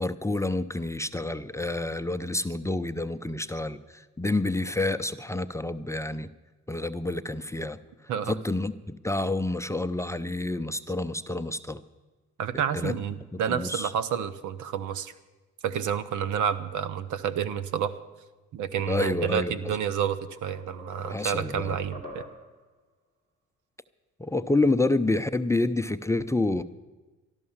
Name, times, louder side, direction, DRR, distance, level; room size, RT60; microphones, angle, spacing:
voice 1, 0.0-6.3 6.7-7.8 8.3-11.8 12.7-12.9 13.3-13.9 18.9-19.8 21.1-21.8 24.2-26.6, left 2 dB, 10° left, 9 dB, 0.5 m, -28 dB
voice 2, 12.4-15.1 15.6-18.0 18.5-22.2, right 8 dB, 80° right, 13 dB, 0.9 m, -29 dB
sound 1, 19.4-19.6 20.0-22.6, left 1 dB, 25° right, 2.6 m, -44 dB
12.5 x 12.5 x 7.3 m, 1.2 s
cardioid pair, 90°, 30 cm